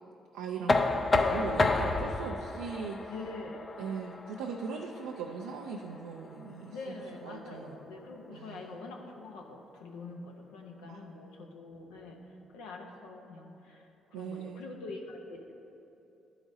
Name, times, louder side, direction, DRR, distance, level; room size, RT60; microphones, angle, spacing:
voice 1, 0.3-0.8 1.1-3.1 3.8-7.8 8.3-8.8 10.8-11.0 14.1-14.6, right 5 dB, 85° right, 1 dB, 0.4 m, -39 dB
Knock, 0.7-6.5, left 3 dB, 35° left, 0.5 m, -31 dB
voice 2, 3.1-3.7 6.7-12.2 12.5-15.5, left 3 dB, 85° left, 1 dB, 0.8 m, -44 dB
11.5 x 4.9 x 2.7 m, 2.9 s
hypercardioid pair, 50°, 0 cm